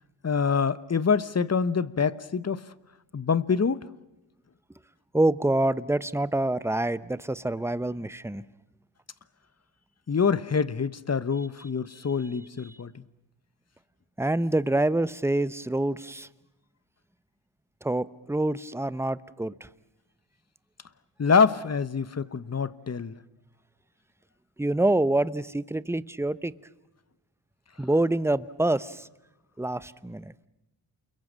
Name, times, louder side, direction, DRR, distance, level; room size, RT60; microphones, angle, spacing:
voice 1, 0.2-2.7 3.1-3.9 10.1-13.0 21.2-23.2, left 5 dB, 30° left, 1.1 m, -25 dB
voice 2, 5.1-8.4 14.2-16.3 17.8-19.5 24.6-26.5 27.8-29.1 29.6-30.3, right 1 dB, 5° right, 0.8 m, -26 dB
29.0 x 22.0 x 7.5 m
cardioid pair, 55°, 49 cm